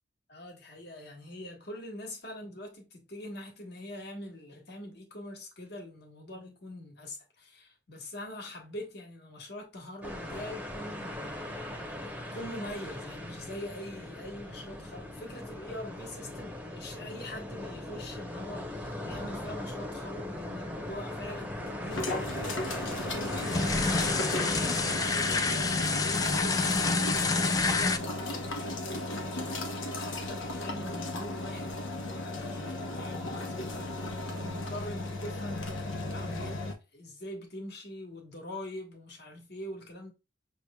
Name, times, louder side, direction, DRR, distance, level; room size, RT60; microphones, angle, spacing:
voice 1, 0.3-11.6 12.0-35.7 36.0-36.6 36.9-40.1, left 1 dB, 55° left, 1.4 m, -43 dB
sound 1, 10.0-27.9, left 1 dB, 10° right, 0.9 m, -39 dB
sound 2, 21.9-36.7, left 1 dB, 80° left, 0.9 m, -36 dB
sound 3, 23.3-28.0, left 4 dB, 20° left, 0.3 m, -28 dB
6.3 x 3.1 x 2.3 m
head